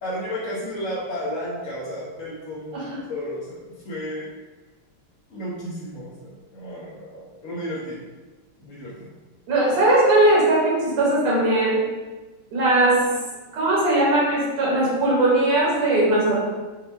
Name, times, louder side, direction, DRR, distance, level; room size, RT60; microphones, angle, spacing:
voice 1, 0.0-4.3 5.3-8.0 8.6-9.1, equal, 60° left, -7 dB, 0.8 m, -33 dB
voice 2, 9.5-11.8 12.5-13.1 13.5-16.4, right 1 dB, 85° right, -6 dB, 2.3 m, -19 dB
5.4 x 2.3 x 3.4 m, 1.2 s
omnidirectional pair, 2.4 m